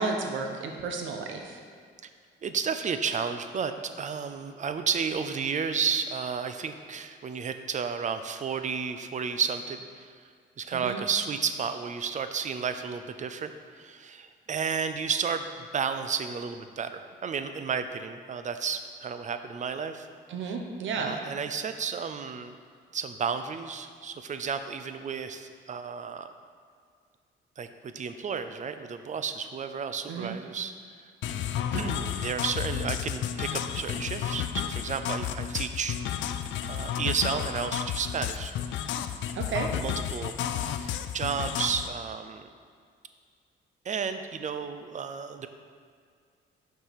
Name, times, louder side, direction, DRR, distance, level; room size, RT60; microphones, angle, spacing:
voice 1, 0.0-1.6 10.7-11.0 20.3-21.1 30.1-30.4 39.3-39.7, right 4 dB, 75° right, 3 dB, 1.0 m, -32 dB
voice 2, 2.4-10.1 10.6-20.1 21.0-22.6 22.9-26.3 27.6-30.7 31.0-31.1 31.7-36.0 36.6-38.5 39.8-42.5 43.8-45.5, right 6 dB, 40° right, 9 dB, 0.5 m, -32 dB
sound 1, 31.2-41.9, left 9 dB, 70° left, 0.4 m, -32 dB
5.7 x 4.7 x 5.7 m, 2.2 s
cardioid pair, 90°, 20 cm